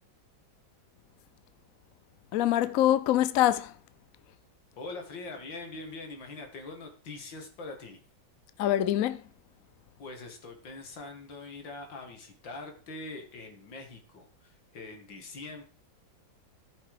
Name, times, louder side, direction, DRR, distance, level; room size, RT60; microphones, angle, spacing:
voice 1, 2.3-3.8 8.6-9.2, left 12 dB, 65° left, 0.8 m, -24 dB
voice 2, 4.8-8.0 10.0-15.6, left 3 dB, 80° left, 2.6 m, -43 dB
14.0 x 5.9 x 4.9 m
omnidirectional pair, 2.0 m